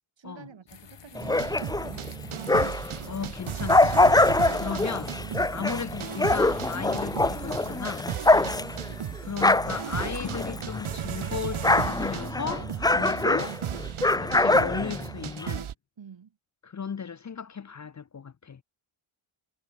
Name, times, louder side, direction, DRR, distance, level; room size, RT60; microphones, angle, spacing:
voice 1, 0.2-2.5 4.4-4.6 5.3-5.6 8.3-8.6 12.9-13.2 16.0-16.4, right 7 dB, 65° right, 5.7 m, -48 dB
sound 1, 0.7-12.2, left 8 dB, 55° left, 2.2 m, -48 dB
sound 2, 1.1-3.0 3.4-11.0 11.2-15.5, left 2 dB, 10° left, 0.5 m, -24 dB
sound 3, 1.2-15.7, right 9 dB, 80° right, 2.5 m, -35 dB
voice 2, 3.1-4.1 4.6-5.1 5.5-8.1 9.2-13.5 14.2-15.7 16.6-18.6, left 6 dB, 35° left, 0.8 m, -35 dB
cardioid pair, 95°, 49 cm